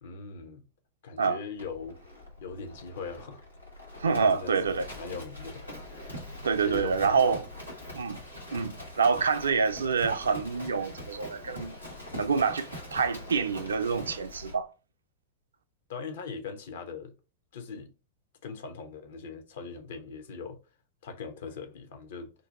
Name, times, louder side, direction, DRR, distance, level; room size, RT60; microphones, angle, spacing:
voice 1, 0.0-0.6 1.0-2.0 2.4-3.4 4.0-5.7 6.5-7.4 15.9-17.1 17.5-17.9 18.4-20.6 21.0-22.3, left 5 dB, 60° left, 0.6 m, -40 dB
Livestock farm animals working animals, 1.6-14.6, left 1 dB, 90° left, 1.0 m, -43 dB
voice 2, 4.0-4.9 6.4-7.4 7.9-8.2 8.5-11.8 12.1-14.7, right 5 dB, 70° right, 0.3 m, -27 dB
2.6 x 2.2 x 4.0 m
figure-of-eight pair, 90°, 0 cm